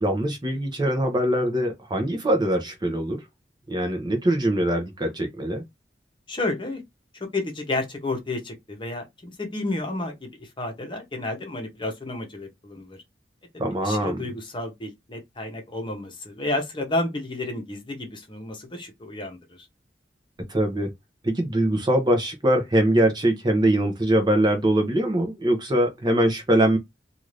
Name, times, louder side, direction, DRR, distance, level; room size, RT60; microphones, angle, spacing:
voice 1, 0.0-3.2 3.7-5.6 13.6-14.2 20.5-20.9 21.2-26.8, right 1 dB, 25° right, 0.7 m, -22 dB
voice 2, 6.3-6.8 7.1-13.0 13.8-19.7, left 2 dB, 30° left, 0.9 m, -31 dB
2.6 x 2.4 x 3.1 m
head